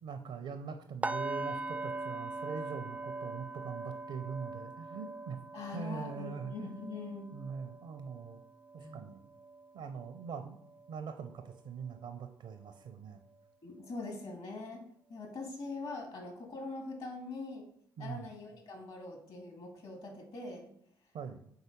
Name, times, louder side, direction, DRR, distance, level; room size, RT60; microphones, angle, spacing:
voice 1, 0.0-5.4 5.7-7.0 7.3-8.4 8.7-9.2 9.7-13.2 18.0-18.3 21.1-21.5, right 6 dB, 65° right, 7 dB, 0.5 m, -43 dB
sound 1, 1.0-11.0 11.3-11.6 12.0-12.1, right 2 dB, 15° right, 0.3 m, -42 dB
voice 2, 5.5-7.3 8.8-9.0 13.6-17.7 18.0-20.7, left 3 dB, 60° left, 2 dB, 1.9 m, -43 dB
4.8 x 4.0 x 5.2 m, 0.68 s
hypercardioid pair, 45°, 11 cm